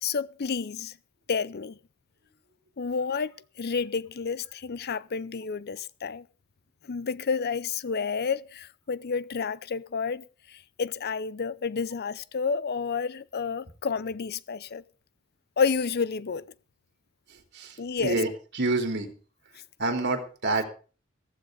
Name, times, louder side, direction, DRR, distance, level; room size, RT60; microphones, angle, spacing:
voice 1, 0.0-0.9 1.3-1.8 2.8-3.3 3.6-6.2 6.9-14.8 15.6-16.5 17.8-18.2, left 5 dB, 50° left, 0.6 m, -30 dB
voice 2, 17.3-19.1 19.8-20.7, right 2 dB, 55° right, 3.6 m, -28 dB
15.5 x 14.5 x 3.9 m
head